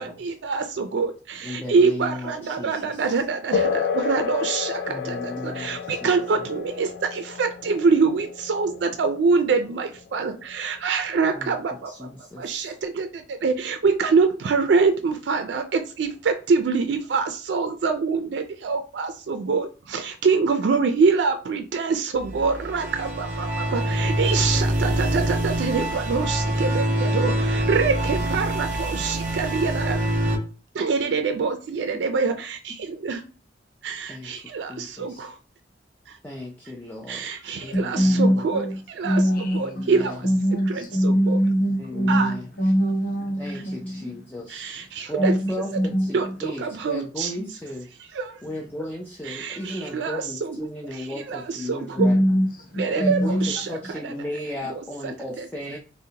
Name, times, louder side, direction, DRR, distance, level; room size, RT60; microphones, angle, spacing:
voice 1, 0.0-12.1 12.4-30.0 30.7-33.2 33.8-35.4 36.1-36.2 37.1-40.3 40.7-41.4 42.1-42.3 43.5-43.6 44.5-45.4 46.1-47.3 48.1-48.4 49.2-50.6 50.9-52.1 52.7-54.1 54.6-55.5, right 4 dB, 75° right, 0.4 m, -25 dB
voice 2, 1.4-2.8 4.9-6.2 11.3-11.5 11.9-12.7 24.8-25.4 34.1-34.3 34.7-35.2 36.2-37.3 37.6-38.5 39.6-40.2 41.8-42.5 43.4-44.7 45.1-47.9 48.4-52.2 52.9-53.4 53.7-55.8, left 1 dB, 10° left, 0.4 m, -35 dB
sound 1, 3.5-11.5, left 6 dB, 90° left, 0.3 m, -31 dB
sound 2, 22.2-30.4, right 1 dB, 45° right, 0.7 m, -25 dB
voice 3, 37.7-38.8 39.0-39.9 40.2-44.1 45.2-46.1 52.0-53.5 53.8-53.9, equal, 55° left, 0.9 m, -23 dB
3.8 x 2.1 x 2.7 m
head